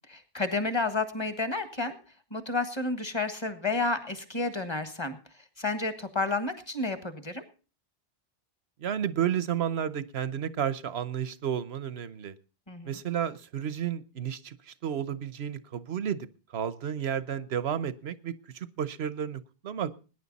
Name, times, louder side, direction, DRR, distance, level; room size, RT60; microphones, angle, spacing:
voice 1, 0.1-2.0 2.3-5.2 5.6-7.4 12.7-13.0, left 3 dB, 25° left, 9 dB, 1.6 m, -31 dB
voice 2, 8.8-12.3 12.9-14.5 14.8-16.3 16.5-20.0, right 9 dB, 80° right, 16 dB, 1.1 m, -32 dB
20.5 x 10.0 x 4.1 m, 0.36 s
omnidirectional pair, 1.0 m